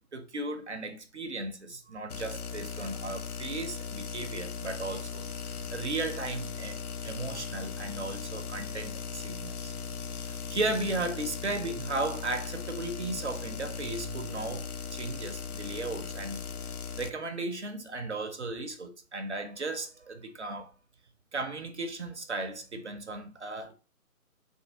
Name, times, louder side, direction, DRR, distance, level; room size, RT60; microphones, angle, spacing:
voice 1, 0.1-9.7 10.2-20.7 21.3-23.7, right 2 dB, 50° right, 0.6 m, -36 dB
sound 1, 2.1-17.1, left 6 dB, 85° left, 0.6 m, -38 dB
3.8 x 3.4 x 2.7 m
figure-of-eight pair, 150°, 43 cm